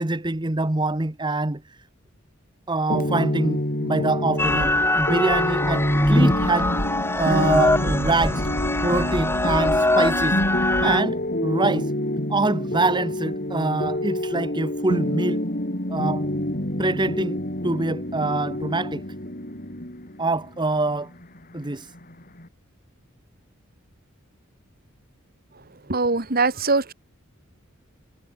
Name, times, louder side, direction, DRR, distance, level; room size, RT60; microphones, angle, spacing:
voice 1, 0.0-1.6 2.7-6.7 7.1-8.5 8.8-10.4 10.8-11.9 12.3-15.4 15.9-16.3 16.8-19.0 20.2-21.1 21.5-21.9, right 2 dB, 20° right, 1.0 m, -25 dB
sound 1, 2.9-22.5, left 1 dB, 45° left, 5.0 m, -27 dB
sound 2, 4.4-11.0, left 1 dB, 10° left, 2.6 m, -22 dB
voice 2, 25.9-26.9, right 3 dB, 45° right, 2.2 m, -22 dB
head